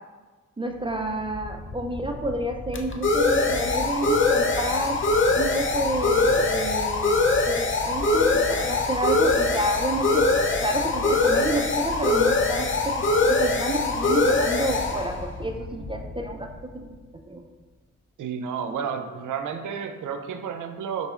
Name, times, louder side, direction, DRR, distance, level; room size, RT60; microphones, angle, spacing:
voice 1, 0.6-5.0 5.3-10.3 10.6-16.5 16.7-16.9 17.3-17.4, right 1 dB, 15° right, 3 dB, 0.4 m, -29 dB
sound 1, 1.1-16.5, left 3 dB, 40° left, 0.6 m, -23 dB
voice 2, 18.2-21.1, right 7 dB, 80° right, 7 dB, 0.5 m, -31 dB
5.4 x 3.7 x 2.4 m, 1.3 s
supercardioid pair, 45°, 30 cm